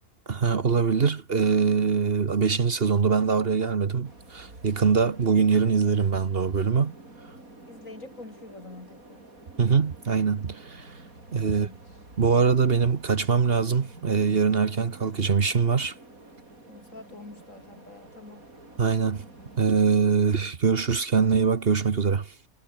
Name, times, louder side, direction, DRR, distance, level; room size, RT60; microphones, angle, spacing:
voice 1, 0.3-6.9 9.6-10.9 11.3-11.7 12.2-15.9 18.8-19.2 19.6-22.3, right 5 dB, 45° right, 1.3 m, -23 dB
sound 1, 4.0-19.7, right 2 dB, 85° right, 6.4 m, -49 dB
voice 2, 7.7-9.3 11.5-11.8 16.7-18.5, left 2 dB, 70° left, 5.4 m, -46 dB
omnidirectional pair, 1.4 m